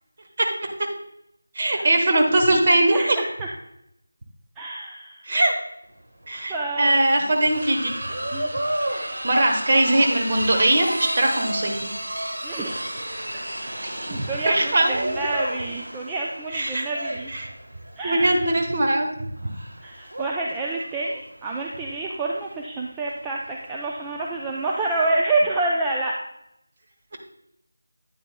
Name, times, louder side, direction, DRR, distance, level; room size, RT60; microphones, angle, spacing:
voice 1, 1.5-3.2 5.3-5.5 6.3-7.9 8.9-11.9 13.8-14.1 14.4-15.1 16.5-16.8 17.3-17.5 18.0-19.1, right 1 dB, 30° right, 2 dB, 1.2 m, -21 dB
voice 2, 2.8-3.5 4.6-5.3 6.5-7.2 7.6-7.7 8.3-8.5 12.4-12.7 14.1-17.3 18.0-18.5 19.8-26.1, right 2 dB, 10° right, -2 dB, 0.4 m, -28 dB
sound 1, 5.9-6.0 6.2-25.1, right 1 dB, 55° right, 1.5 m, -32 dB
9.5 x 9.3 x 2.2 m, 0.79 s
figure-of-eight pair, 165°, 0 cm